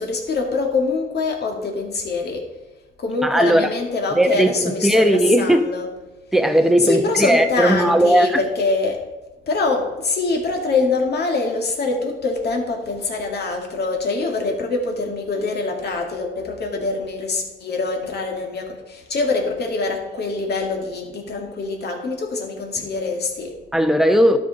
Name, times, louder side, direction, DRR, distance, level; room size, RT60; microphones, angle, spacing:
voice 1, 0.0-2.5 3.0-5.9 6.8-9.0 9.5-23.5, left 3 dB, 55° left, 1 dB, 2.1 m, -24 dB
voice 2, 3.2-3.7 4.1-5.6 6.3-8.4 23.7-24.4, right 1 dB, ahead, 7 dB, 0.9 m, -17 dB
12.5 x 5.4 x 4.0 m, 1.1 s
cardioid pair, 90°, 20 cm